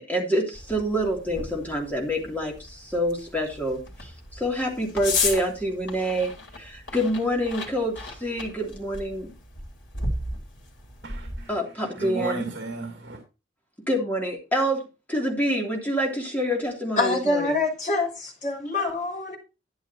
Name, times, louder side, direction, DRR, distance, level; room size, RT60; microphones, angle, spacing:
voice 1, 0.0-9.3 11.5-12.4 13.9-17.6, equal, 10° left, -1 dB, 3.1 m, -27 dB
sound 1, 0.5-11.5, left 3 dB, 70° left, 3.6 m, -35 dB
voice 2, 11.0-13.2, right 2 dB, 60° right, 4 dB, 2.6 m, -34 dB
voice 3, 17.0-19.4, left 3 dB, 40° left, 0 dB, 5.7 m, -25 dB
13.0 x 10.0 x 2.9 m, 0.30 s
head